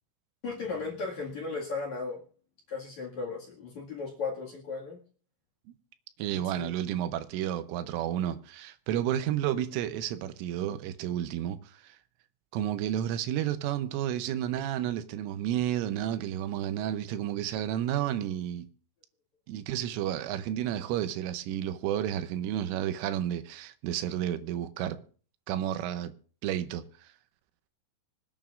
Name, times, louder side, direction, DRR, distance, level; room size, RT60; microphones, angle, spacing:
voice 1, 0.4-2.2 2.7-5.0 6.3-6.7, left 4 dB, 50° left, 2.4 m, -36 dB
voice 2, 6.2-11.9 12.5-18.7 19.5-25.0 25.5-26.1 26.4-26.8, right 11 dB, 85° right, 3.4 m, -31 dB
25.5 x 9.3 x 2.5 m
omnidirectional pair, 5.7 m